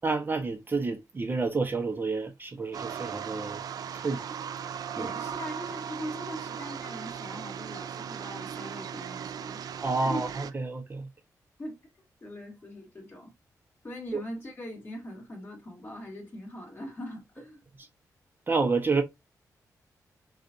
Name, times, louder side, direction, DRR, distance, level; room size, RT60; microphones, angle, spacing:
voice 1, 0.0-3.6 3.9-4.4 5.0-5.1 9.8-11.1 14.1-14.2 17.8-17.9 18.5-19.0, right 4 dB, 30° right, 0.8 m, -29 dB
sound 1, 2.7-10.5, right 8 dB, 80° right, 0.4 m, -37 dB
voice 2, 4.9-9.7 10.0-10.2 11.6-11.8 12.2-13.3 13.8-17.6, equal, 30° left, 2.3 m, -41 dB
6.5 x 2.5 x 2.6 m
cardioid pair, 100°, 6 cm